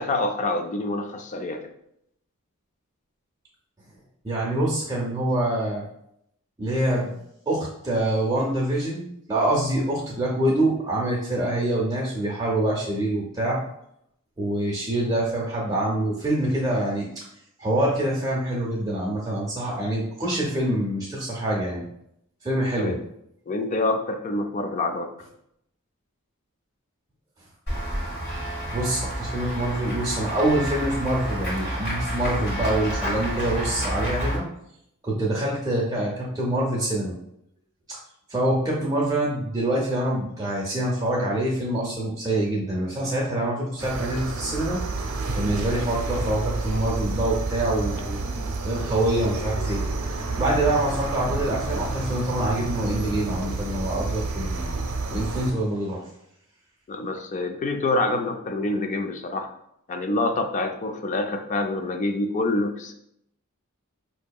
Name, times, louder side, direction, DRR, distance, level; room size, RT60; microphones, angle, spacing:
voice 1, 0.0-1.6 22.8-23.0 23.5-25.1 56.9-59.5 59.9-62.9, left 2 dB, 35° left, 6 dB, 0.4 m, -26 dB
voice 2, 4.2-5.9 6.6-7.1 7.5-13.6 14.4-17.2 17.6-21.8 22.4-23.0 28.7-34.5 35.0-37.1 37.9-38.0 38.3-44.8 45.3-48.2 48.6-49.8 50.4-54.7 55.1-56.0, right 1 dB, 15° right, -5 dB, 0.6 m, -25 dB
Run / Walk footsteps / Bell, 27.7-34.4, right 1 dB, 50° left, 1.4 m, -29 dB
sound 1, 43.8-55.5, right 3 dB, 80° right, 0.6 m, -29 dB
4.8 x 2.7 x 2.3 m, 0.75 s
head